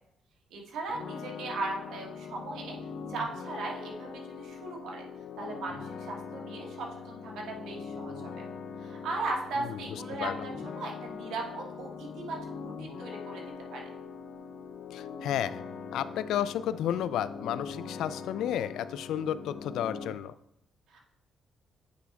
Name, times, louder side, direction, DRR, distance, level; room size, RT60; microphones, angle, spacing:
voice 1, 0.5-2.8 3.1-5.0 5.4-8.4 8.8-13.4 13.7-13.9 20.9-21.0, right 3 dB, 90° right, 0 dB, 1.5 m, -38 dB
sound 1, 0.9-20.1, left 5 dB, 65° left, 0.7 m, -42 dB
voice 2, 14.9-15.6 15.9-20.3, left 10 dB, 85° left, 15 dB, 0.3 m, -32 dB
8.2 x 4.6 x 3.5 m, 0.77 s
cardioid pair, 170°, 0 cm